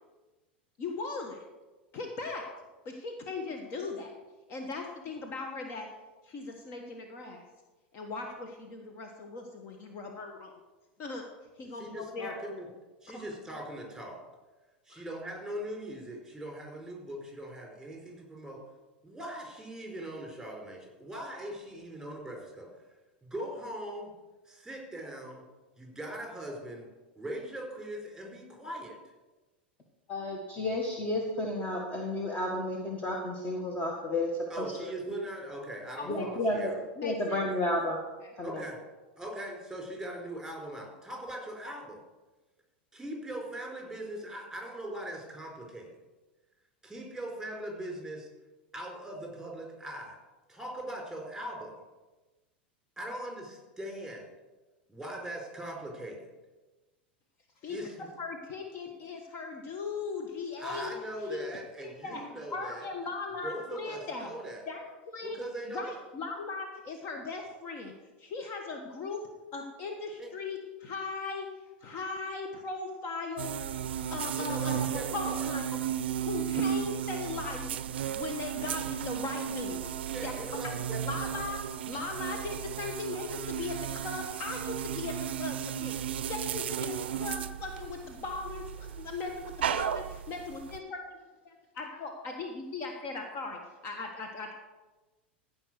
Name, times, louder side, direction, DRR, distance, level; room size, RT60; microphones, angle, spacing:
voice 1, 0.8-1.4 1.9-2.5 2.8-4.1 4.5-5.9 6.2-7.4 7.9-10.5 11.0-11.2 11.6-12.3 13.1-13.2 14.9-15.0 36.0-36.5 37.0-37.4 38.2-38.3 57.6-57.8 58.2-60.9 61.3-61.4 61.8-62.3 62.5-64.3 64.7-65.4 65.7-67.9 68.2-69.2 69.5-71.5 71.8-73.6 74.1-75.8 76.2-77.8 78.1-79.8 80.2-80.3 81.0-81.6 81.8-91.0 91.4-94.5, left 4 dB, 45° left, 3 dB, 1.5 m, -38 dB
voice 2, 11.8-12.7 13.0-14.2 14.9-18.6 19.0-22.7 23.2-24.1 24.5-25.4 25.8-26.9 27.2-29.0 34.5-36.8 38.4-38.7 39.2-42.0 42.9-45.9 46.8-48.3 48.7-50.2 50.5-51.8 53.0-54.3 54.9-56.3 57.7-58.1 60.6-62.9 63.4-64.6 65.2-65.8 70.2-70.3 74.4-75.5 78.7-78.8 80.1-81.5, right 1 dB, 5° right, 0 dB, 4.5 m, -40 dB
voice 3, 30.1-34.6 36.1-36.7 37.0-38.0 38.4-38.6, left 1 dB, 25° left, 1 dB, 1.7 m, -31 dB
sound 1, 73.4-90.8, right 10 dB, 70° right, 0.4 m, -34 dB
15.0 x 5.4 x 6.5 m, 1.2 s
hypercardioid pair, 90°, 6 cm